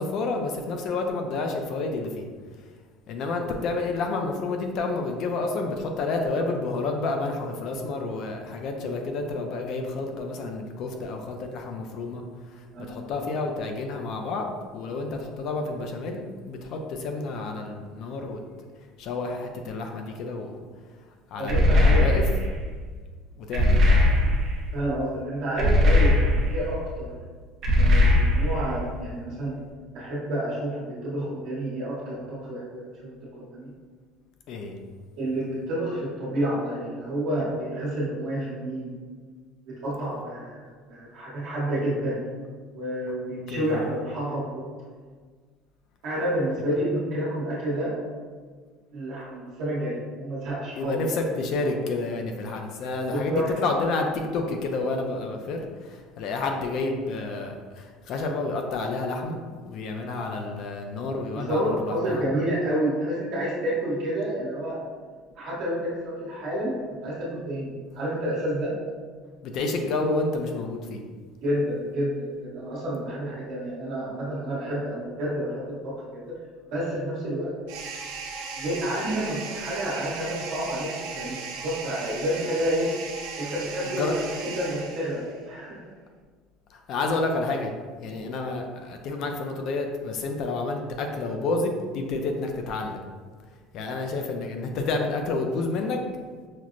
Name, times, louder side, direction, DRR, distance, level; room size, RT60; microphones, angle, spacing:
voice 1, 0.0-2.3 3.1-18.4 19.0-20.6 21.3-22.3 23.4-24.1 34.5-34.7 43.5-43.9 50.7-62.3 69.4-71.0 83.8-84.1 86.7-87.7 88.0-93.0 93.7-96.0, left 3 dB, 45° left, 3 dB, 0.3 m, -30 dB
voice 2, 21.4-22.1 24.7-27.1 27.8-29.6 29.9-33.7 35.2-38.9 39.6-42.2 42.7-44.6 46.0-47.9 48.9-51.0 53.1-53.5 61.3-64.8 65.3-68.7 71.4-75.6 76.1-76.4 76.7-77.5 78.5-82.9 83.4-84.2 84.5-85.8, right 1 dB, 55° right, -7 dB, 1.1 m, -29 dB
sound 1, 21.5-22.6 23.5-24.6 25.6-26.7 27.6-28.7, left 1 dB, 30° right, 0.6 m, -19 dB
sound 2, 77.7-85.4, right 5 dB, 90° right, 0.5 m, -37 dB
5.7 x 2.0 x 2.4 m, 1.6 s
cardioid pair, 175°, 0 cm